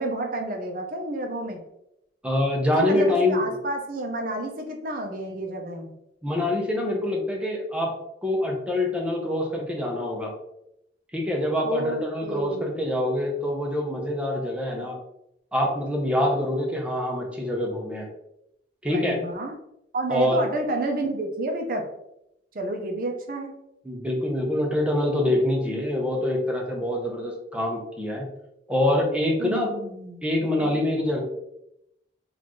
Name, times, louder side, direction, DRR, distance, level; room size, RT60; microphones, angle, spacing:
voice 1, 0.0-1.6 2.7-5.9 11.6-12.9 18.9-19.6 19.9-21.9 22.5-23.5 29.4-30.2 30.6-30.8, right 1 dB, 50° right, 3 dB, 0.6 m, -30 dB
voice 2, 2.2-3.4 6.2-10.3 11.1-15.0 15.5-18.1 18.8-19.2 20.1-20.4 23.8-28.3 28.7-29.7 30.2-31.2, left 1 dB, 5° right, 0 dB, 0.7 m, -25 dB
4.2 x 2.5 x 3.0 m, 0.83 s
head